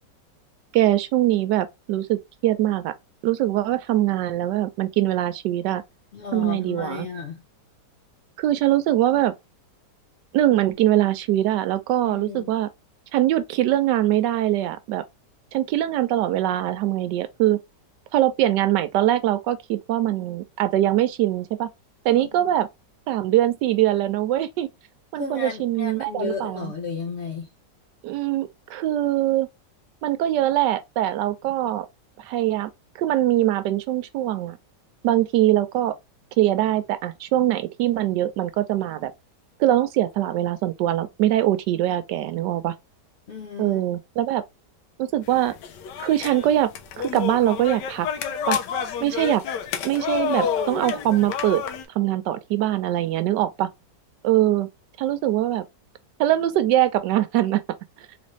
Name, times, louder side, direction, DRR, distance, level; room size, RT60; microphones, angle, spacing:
voice 1, 0.7-2.9 3.2-5.8 6.3-7.1 8.4-9.3 10.3-12.7 13.1-15.0 15.5-17.6 18.1-21.7 22.0-22.7 23.1-24.7 25.1-26.7 28.0-29.5 30.0-31.9 32.2-32.7 33.0-34.6 35.0-36.0 36.4-39.1 39.6-42.7 43.6-44.4 45.0-45.5 46.0-46.7 47.0-48.1 48.5-48.6 49.0-49.4 49.8-51.6 52.0-53.7 54.2-54.7 55.0-55.6 56.2-57.6, right 13 dB, 80° right, 1.2 m, -22 dB
voice 2, 6.1-7.4 12.0-12.5 22.1-22.5 25.1-27.5 43.3-43.8, left 5 dB, 65° left, 0.6 m, -34 dB
sound 1, 45.3-51.9, left 7 dB, 85° left, 1.3 m, -29 dB
3.9 x 2.6 x 3.0 m
omnidirectional pair, 1.9 m